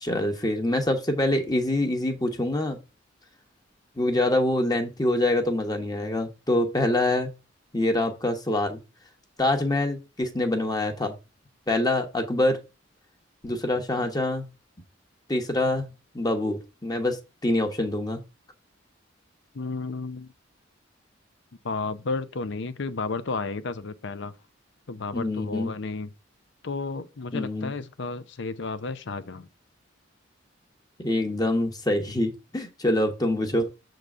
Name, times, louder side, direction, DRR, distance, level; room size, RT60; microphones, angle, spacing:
voice 1, 0.0-2.8 4.0-7.3 7.7-8.8 9.4-11.1 11.7-12.6 13.4-14.5 15.3-15.9 16.1-18.2 25.1-25.7 27.3-27.7 31.0-33.7, left 1 dB, 20° left, 1.2 m, -25 dB
voice 2, 19.5-20.3 21.6-24.3 24.9-26.1 26.6-29.5, left 4 dB, 65° left, 0.7 m, -32 dB
6.8 x 3.9 x 6.0 m
head